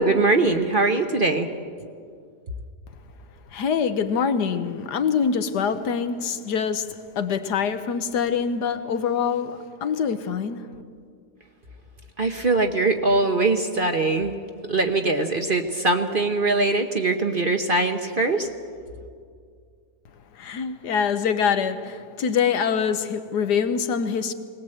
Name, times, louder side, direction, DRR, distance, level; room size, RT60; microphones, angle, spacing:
voice 1, 0.0-1.5 12.2-14.4 14.7-18.5, right 2 dB, 40° right, 1.0 m, -22 dB
voice 2, 3.5-10.6 20.4-24.3, left 6 dB, 75° left, 1.5 m, -25 dB
20.5 x 19.0 x 7.8 m
omnidirectional pair, 1.8 m